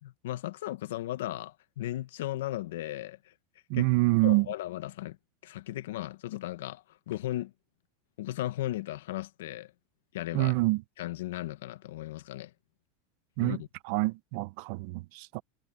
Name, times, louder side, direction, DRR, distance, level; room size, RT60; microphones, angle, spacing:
voice 1, 0.0-3.3 3.7-3.9 4.2-5.2 5.4-7.5 8.2-9.7 10.1-10.6 11.0-12.5 13.4-13.7, left 14 dB, 80° left, 0.9 m, -36 dB
voice 2, 3.7-4.5 10.3-10.8 13.4-13.6 13.9-15.4, right 22 dB, 50° right, 0.7 m, -26 dB
supercardioid pair, 160°, 0 cm